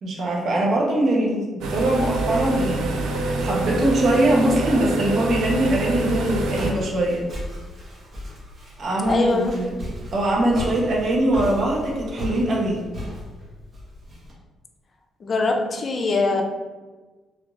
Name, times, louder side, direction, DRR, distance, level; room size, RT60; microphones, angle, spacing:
voice 1, 0.0-7.3 8.8-9.7 10.1-12.8, right 1 dB, 60° right, -2 dB, 0.9 m, -22 dB
sound 1, 1.6-6.7, right 2 dB, 85° right, 0.5 m, -26 dB
Walk footsteps, 5.7-14.3, left 1 dB, 45° right, 1.2 m, -36 dB
voice 2, 9.1-9.6 15.2-16.4, left 3 dB, 45° left, 3 dB, 0.4 m, -22 dB
3.4 x 3.0 x 2.5 m, 1.3 s
cardioid pair, 90°, 0 cm